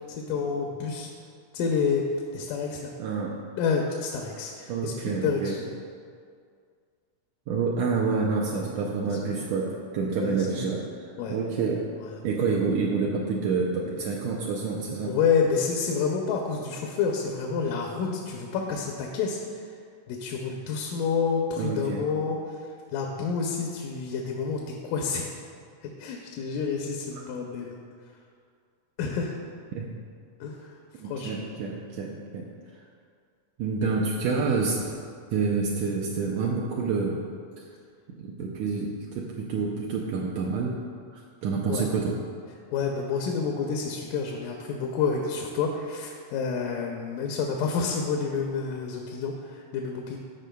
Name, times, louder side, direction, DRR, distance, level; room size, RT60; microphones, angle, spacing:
voice 1, 0.1-1.1 1.5-2.0 2.3-2.9 3.6-5.7 8.6-8.7 9.0-9.2 10.2-10.7 11.2-11.4 15.1-19.4 20.1-22.4 22.9-25.3 25.8-27.8 29.0-29.3 30.4-30.6 31.0-31.3 41.7-41.9 42.7-50.2, left 5 dB, 85° left, 1 dB, 2.2 m, -29 dB
voice 2, 3.0-3.3 4.7-5.6 7.5-9.7 9.9-11.8 12.2-15.1 21.6-22.1 29.7-29.9 31.0-32.5 33.6-34.9 35.3-37.2 38.2-40.7 41.4-42.2, right 4 dB, 90° right, -3 dB, 1.5 m, -28 dB
13.5 x 5.2 x 2.2 m, 2.2 s
omnidirectional pair, 3.7 m